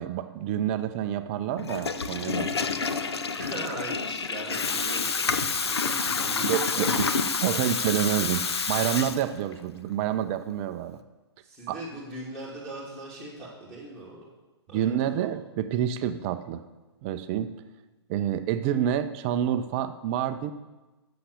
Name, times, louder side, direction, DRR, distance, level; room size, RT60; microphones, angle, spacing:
voice 1, 0.0-2.5 6.4-6.9 7.2-11.0 11.7-11.8 14.7-16.6 17.0-17.5 18.1-20.5, right 10 dB, 25° right, 10 dB, 0.5 m, -28 dB
Water tap faucet / Toilet flush, 1.6-9.6, left 5 dB, 65° left, 0.9 m, -28 dB
voice 2, 3.4-7.0 11.4-14.2 14.7-15.3, right 2 dB, 5° left, -9 dB, 2.6 m, -40 dB
11.5 x 7.0 x 8.1 m, 1.1 s
figure-of-eight pair, 120°, 14 cm